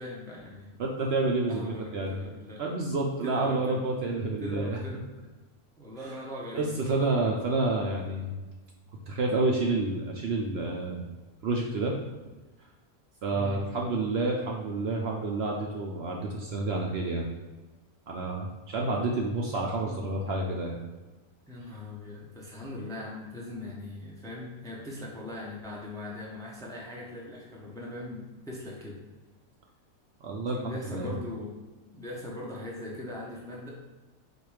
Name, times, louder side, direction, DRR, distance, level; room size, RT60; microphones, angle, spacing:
voice 1, 0.0-0.7 1.4-2.6 3.2-3.8 4.4-5.0 5.8-6.8 13.3-13.6 19.8-20.1 21.5-29.0 30.6-31.6 31.9-33.7, left 1 dB, 5° left, -4 dB, 0.5 m, -40 dB
voice 2, 0.8-2.2 2.6-4.8 6.0-6.1 6.5-8.3 9.1-11.0 11.4-11.9 13.2-17.3 18.1-20.8 30.2-31.1, right 2 dB, 70° right, 0 dB, 0.6 m, -29 dB
4.4 x 2.5 x 4.7 m, 1.2 s
omnidirectional pair, 1.6 m